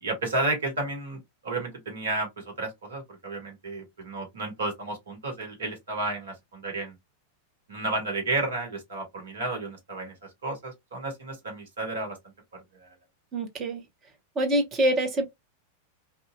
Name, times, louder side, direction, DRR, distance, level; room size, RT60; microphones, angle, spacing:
voice 1, 0.0-7.0 7.7-10.1 10.4-12.2 12.5-12.9, right 2 dB, 65° right, 1.2 m, -32 dB
voice 2, 13.3-13.8 14.4-15.3, right 1 dB, 30° right, 1.0 m, -25 dB
2.6 x 2.2 x 2.6 m
figure-of-eight pair, 90°, 0 cm